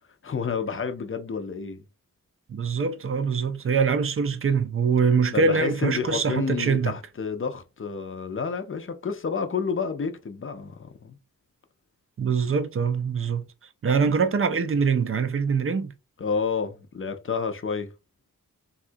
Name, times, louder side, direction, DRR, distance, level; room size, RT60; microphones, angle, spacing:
voice 1, 0.2-1.8 5.3-11.2 16.2-17.9, left 5 dB, 40° left, 0.5 m, -30 dB
voice 2, 2.5-6.9 12.2-13.4 13.8-15.9, right 5 dB, 40° right, 0.4 m, -23 dB
3.6 x 2.3 x 2.5 m
wide cardioid pair, 100°, 34 cm